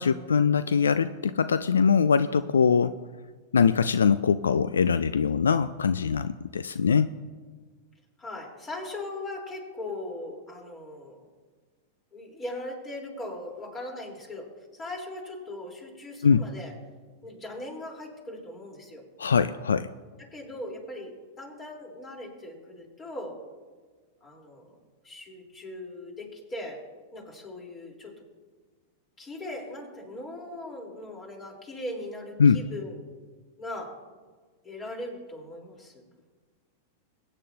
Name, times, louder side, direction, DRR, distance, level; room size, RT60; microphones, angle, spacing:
voice 1, 0.0-3.0 3.5-7.1 16.2-16.5 19.2-19.9 32.4-32.6, left 6 dB, 85° left, 13 dB, 0.3 m, -22 dB
voice 2, 8.2-11.3 12.1-16.7 17.2-19.0 20.2-23.4 24.2-24.8 25.0-26.8 27.1-28.1 29.2-33.0 33.6-33.9 34.6-36.0, left 1 dB, 25° left, 0 dB, 3.8 m, -39 dB
22.5 x 9.5 x 2.8 m, 1.4 s
hypercardioid pair, 100°, 0 cm